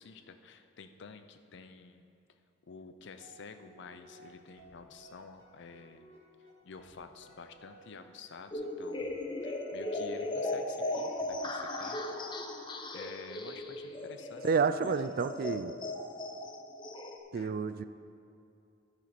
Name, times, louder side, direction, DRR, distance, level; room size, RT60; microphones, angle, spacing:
voice 1, 0.0-2.1 2.7-6.1 6.6-9.1 9.4-12.0 12.9-14.4 14.8-14.9 17.3-17.6, left 4 dB, 65° left, 9 dB, 0.6 m, -50 dB
sound 1, 3.2-12.5, right 1 dB, 85° right, 2.0 m, -57 dB
sound 2, 8.5-17.2, left 2 dB, 25° left, 0.7 m, -37 dB
voice 2, 14.4-15.8 17.3-17.8, right 5 dB, 50° right, 12 dB, 0.3 m, -30 dB
12.5 x 5.0 x 5.9 m, 2.6 s
head